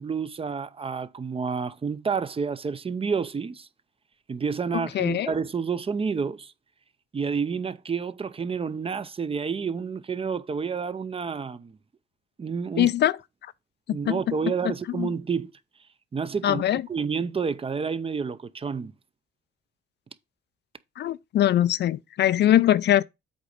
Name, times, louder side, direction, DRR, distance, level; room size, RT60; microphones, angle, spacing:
voice 1, 0.0-3.7 4.3-6.5 7.1-11.8 12.4-12.9 13.9-15.5 16.1-16.6 16.9-18.9, right 5 dB, 30° right, 0.6 m, -29 dB
voice 2, 4.7-5.3 12.8-13.2 13.9-14.2 14.6-14.7 15.0-15.1 16.4-16.8 21.0-23.0, left 12 dB, 60° left, 0.4 m, -22 dB
8.1 x 3.9 x 4.9 m
cardioid pair, 90°, 20 cm